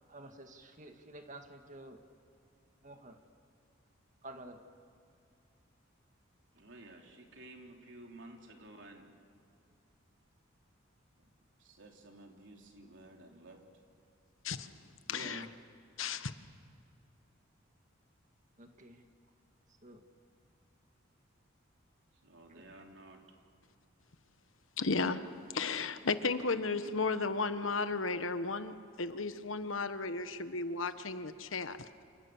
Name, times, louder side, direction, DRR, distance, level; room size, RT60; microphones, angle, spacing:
voice 1, 0.1-2.0 2.8-3.2 4.2-4.6 15.1-15.5 18.6-19.0 19.8-20.0 22.5-22.6, right 1 dB, 40° right, 5 dB, 2.0 m, -50 dB
voice 2, 6.5-9.1 11.2-11.3 11.6-13.6 22.2-23.2, right 2 dB, 65° right, 1 dB, 3.5 m, -53 dB
voice 3, 15.1-15.5 16.0-16.3 24.8-25.2 25.5-31.8, left 4 dB, 85° left, 10 dB, 1.2 m, -34 dB
29.0 x 28.0 x 7.2 m, 2.5 s
head